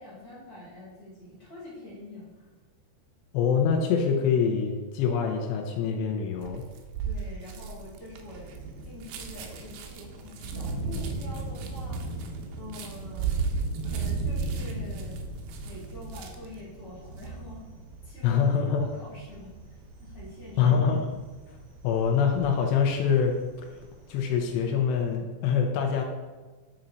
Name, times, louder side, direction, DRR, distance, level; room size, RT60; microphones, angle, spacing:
voice 1, 0.0-2.4 7.0-8.5 8.8-13.3 13.8-15.2 15.6-17.6 18.0-18.4 18.8-21.2, left 2 dB, 30° left, -8 dB, 2.1 m, -45 dB
voice 2, 3.3-6.6 18.2-18.9 20.6-21.1 21.8-23.4 23.7-23.8 24.1-26.0, left 6 dB, 85° left, 2 dB, 2.8 m, -25 dB
sound 1, 6.4-16.6 17.0-17.3, right 5 dB, 80° right, 2.4 m, -35 dB
Thunder, 7.1-24.6, right 2 dB, 65° right, 2.1 m, -40 dB
8.9 x 4.3 x 3.9 m, 1.3 s
omnidirectional pair, 4.8 m